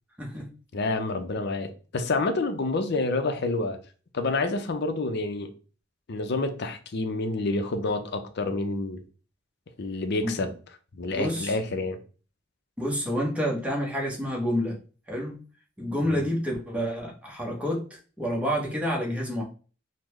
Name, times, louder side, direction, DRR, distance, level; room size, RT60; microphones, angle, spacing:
voice 1, 0.7-1.7 1.9-3.8 4.1-5.5 6.1-9.0 9.8-10.5 11.0-12.0 16.0-16.3, left 3 dB, 60° left, 0.5 m, -28 dB
voice 2, 11.1-11.6 12.8-14.8 15.1-15.4 15.8-19.4, equal, 5° right, 0.8 m, -29 dB
3.7 x 2.1 x 3.1 m
head